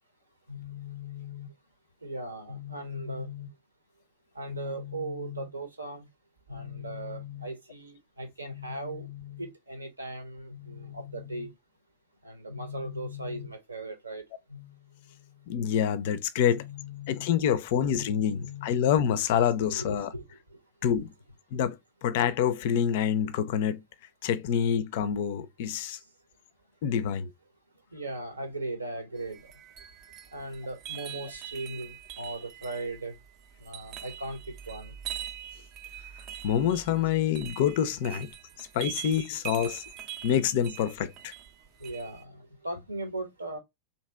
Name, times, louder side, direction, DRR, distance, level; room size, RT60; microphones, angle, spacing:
voice 1, 0.5-1.5 2.0-3.5 4.3-6.1 6.5-11.5 12.2-14.2 14.5-14.8 16.5-17.3 17.7-18.1 18.3-18.7 19.6-20.2 27.9-29.4 30.3-33.1 33.6-34.4 34.7-34.9 41.8-42.4 42.6-43.6, equal, 80° right, 0.8 m, -38 dB
voice 2, 15.5-16.7 17.1-20.1 20.8-21.1 21.5-23.8 24.2-26.0 26.8-27.3 36.4-38.3 38.6-39.8 40.2-41.3, left 9 dB, 50° left, 0.4 m, -27 dB
sound 1, 29.2-42.2, right 11 dB, 40° right, 0.5 m, -43 dB
2.8 x 2.8 x 3.3 m
figure-of-eight pair, 90°, 0 cm